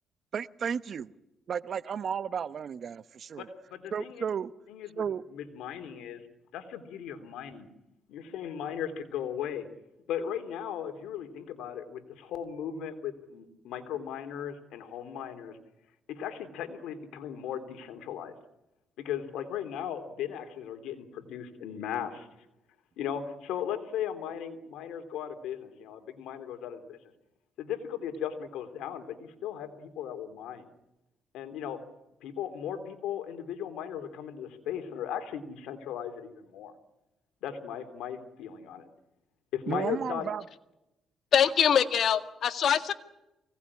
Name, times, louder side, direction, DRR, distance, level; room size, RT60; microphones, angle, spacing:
voice 1, 0.3-1.1 1.5-3.5 3.9-4.5 5.0-5.2 39.7-40.4, right 7 dB, 55° right, 15 dB, 0.9 m, -33 dB
voice 2, 3.4-4.2 4.7-6.3 6.5-7.7 8.1-9.7 10.1-15.6 16.1-18.3 19.0-22.3 23.0-27.0 27.6-30.7 31.3-31.8 32.2-36.7 37.4-38.9 39.5-40.3, left 9 dB, 90° left, 8 dB, 3.1 m, -37 dB
voice 3, 41.3-42.9, left 8 dB, 65° left, 8 dB, 1.9 m, -23 dB
24.5 x 18.5 x 9.8 m, 0.92 s
cardioid pair, 90°, 0 cm